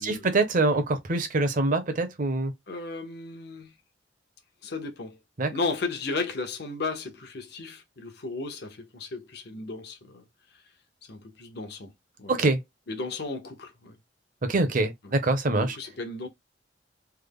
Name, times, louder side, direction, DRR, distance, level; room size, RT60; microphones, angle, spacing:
voice 1, 0.0-2.5 5.4-5.5 12.3-12.6 14.4-15.8, right 2 dB, 50° right, 0.8 m, -24 dB
voice 2, 2.7-3.7 4.6-5.2 5.5-10.3 11.0-11.9 12.2-12.4 12.9-14.0 15.6-16.3, left 3 dB, 65° left, 0.9 m, -34 dB
3.4 x 2.1 x 3.5 m
head